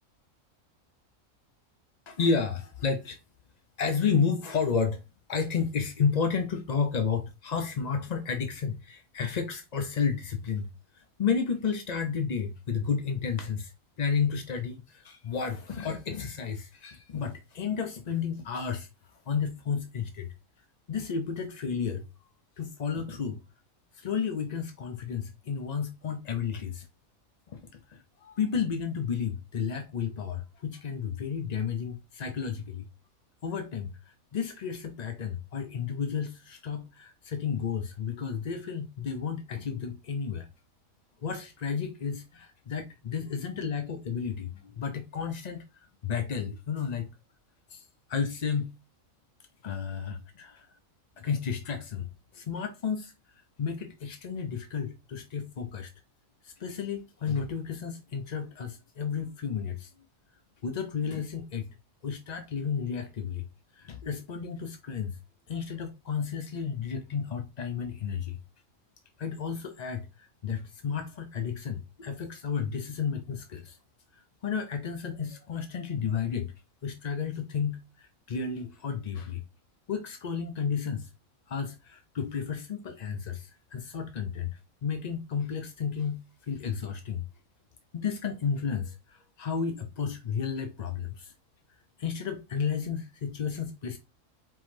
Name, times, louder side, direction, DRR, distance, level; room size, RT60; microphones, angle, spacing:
voice 1, 2.1-3.2 3.8-5.0 5.3-10.7 10.9-13.7 14.0-18.9 19.3-20.3 20.9-22.0 22.6-23.4 23.9-26.9 27.5-32.9 33.4-40.5 41.2-47.1 47.7-48.7 49.6-50.7 51.2-53.1 53.6-55.9 56.4-59.9 60.6-61.7 62.0-63.4 63.7-65.2 65.5-68.4 69.2-73.8 74.1-76.5 76.8-79.4 79.9-81.1 81.5-87.2 87.9-91.3 92.0-94.0, left 6 dB, 55° left, 0.4 m, -32 dB
4.7 x 3.8 x 2.6 m
omnidirectional pair, 1.4 m